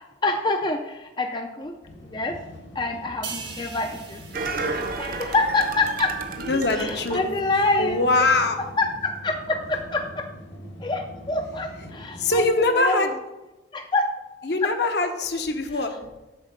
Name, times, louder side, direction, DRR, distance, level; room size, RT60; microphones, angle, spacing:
voice 1, 0.0-1.7 2.1-2.3 2.8-4.5 5.0-6.1 6.8-8.0 8.8-10.2 10.8-12.5 12.7-13.0 13.7-14.0, left 3 dB, 25° left, 5 dB, 0.4 m, -26 dB
sound 1, 1.8-12.5, equal, 85° left, 1.8 m, -43 dB
sound 2, 3.2-6.8 7.1-7.4, right 6 dB, 80° right, 1.6 m, -42 dB
sound 3, 4.3-8.1 8.5-8.6, right 3 dB, 50° right, 0.7 m, -32 dB
voice 2, 6.4-7.2 7.8-8.6 12.2-13.1 14.4-16.0, left 2 dB, 65° left, 6 dB, 0.8 m, -22 dB
8.0 x 4.0 x 6.6 m, 1.1 s
head